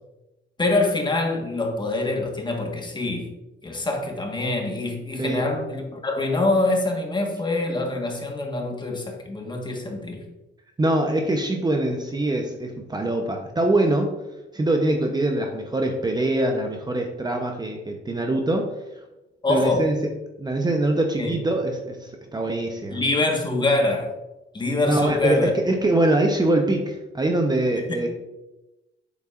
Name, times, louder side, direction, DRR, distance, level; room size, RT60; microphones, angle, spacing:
voice 1, 0.6-3.3 3.6-10.2 19.4-19.8 21.2-21.4 22.9-24.1 24.5-25.5 27.9-28.1, left 2 dB, 20° left, 2 dB, 1.5 m, -25 dB
voice 2, 5.2-5.5 10.8-14.1 14.5-18.7 19.5-20.0 20.4-23.0 24.9-28.1, right 1 dB, 20° right, 3 dB, 0.8 m, -23 dB
7.9 x 7.2 x 2.5 m, 1.0 s
cardioid pair, 90°, 20 cm